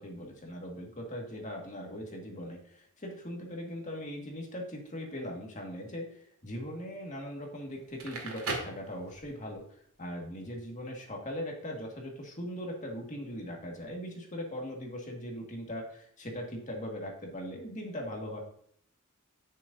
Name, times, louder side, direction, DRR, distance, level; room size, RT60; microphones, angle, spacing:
voice 1, 0.0-18.4, equal, 35° left, 0 dB, 1.9 m, -40 dB
Crackle, 7.8-9.5, right 3 dB, 85° right, 2.0 m, -38 dB
10.5 x 6.5 x 2.7 m, 0.65 s
head